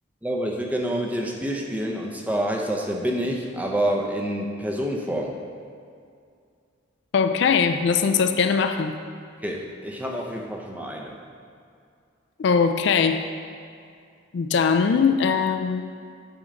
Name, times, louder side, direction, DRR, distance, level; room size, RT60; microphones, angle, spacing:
voice 1, 0.2-5.4 9.4-11.2, right 1 dB, 10° right, 0 dB, 0.5 m, -27 dB
voice 2, 7.1-9.0 12.4-13.2 14.3-15.9, left 6 dB, 60° left, 7 dB, 0.3 m, -21 dB
8.7 x 3.8 x 5.2 m, 2.3 s
head